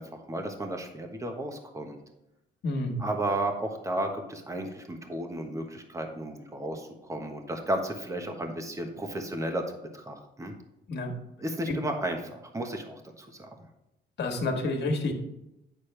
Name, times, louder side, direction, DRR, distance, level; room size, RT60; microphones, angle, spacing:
voice 1, 0.0-2.0 3.0-10.5 11.4-13.5, right 1 dB, 15° right, 4 dB, 1.2 m, -33 dB
voice 2, 2.6-3.0 10.9-11.1 14.2-15.1, left 2 dB, 60° left, 3 dB, 1.7 m, -29 dB
8.4 x 6.5 x 3.3 m, 0.88 s
cardioid pair, 90°, 20 cm